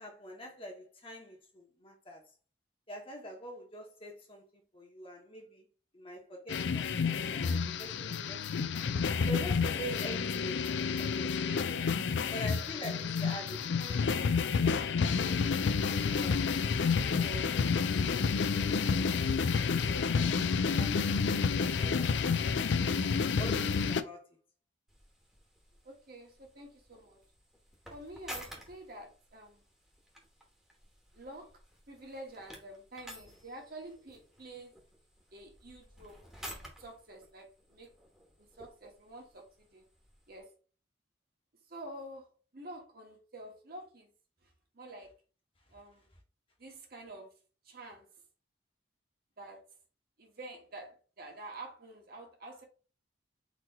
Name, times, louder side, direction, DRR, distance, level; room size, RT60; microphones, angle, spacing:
voice 1, 0.0-2.3 2.9-5.7 5.9-8.8 9.3-11.9 12.3-14.7 15.1-15.5 15.8-16.5 16.9-18.4 18.8-19.3 19.7-20.4 20.7-21.1 21.8-22.4 23.4-24.4, equal, 30° left, 1.2 m, -45 dB
sound 1, 6.5-24.0, left 5 dB, 70° left, 0.4 m, -30 dB
sound 2, 24.9-40.4, equal, ahead, 1.1 m, -52 dB
voice 2, 25.8-27.2 27.9-29.6 31.1-31.5 31.9-34.8 35.3-37.9 38.4-39.9 40.3-40.5 41.7-44.1 44.4-45.1 45.7-46.1 46.6-47.3 47.6-48.1 49.4-49.6 50.2-52.6, right 1 dB, 50° right, 1.3 m, -48 dB
4.1 x 3.0 x 4.1 m
head